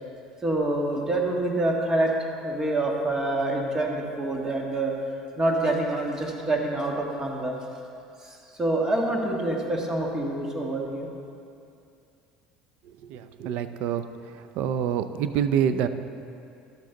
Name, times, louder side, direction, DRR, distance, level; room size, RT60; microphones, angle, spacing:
voice 1, 0.4-2.1 2.4-4.9 5.4-7.6 8.2-11.1, right 2 dB, 25° right, 0 dB, 1.7 m, -26 dB
voice 2, 13.1-14.1 14.6-15.9, right 9 dB, 65° right, 11 dB, 0.5 m, -26 dB
12.5 x 7.5 x 3.9 m, 2.5 s
supercardioid pair, 95°, 3 cm